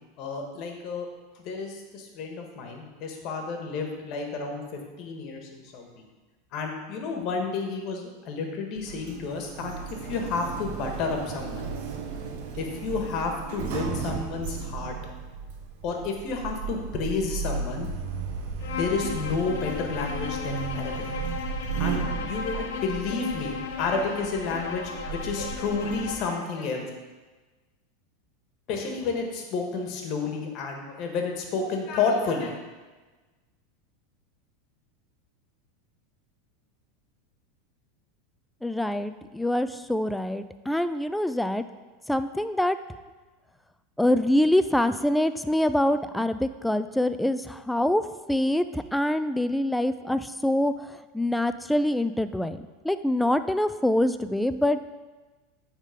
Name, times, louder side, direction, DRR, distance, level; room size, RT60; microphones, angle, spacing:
voice 1, 0.2-1.1 1.4-4.6 5.0-6.0 6.5-11.7 12.6-15.0 15.8-17.9 18.8-21.0 21.8-26.9 28.7-32.6, left 4 dB, 50° left, 2 dB, 1.5 m, -31 dB
Sliding door, 8.8-26.2, right 5 dB, 70° right, 1.0 m, -35 dB
Bowed string instrument, 18.6-26.5, left 6 dB, 80° left, 1.0 m, -36 dB
voice 2, 38.6-41.6 42.1-42.8 44.0-48.0 48.3-52.6 52.8-54.8, left 1 dB, 5° left, 11 dB, 0.3 m, -25 dB
9.1 x 3.7 x 5.0 m, 1.3 s
supercardioid pair, 125°, 0 cm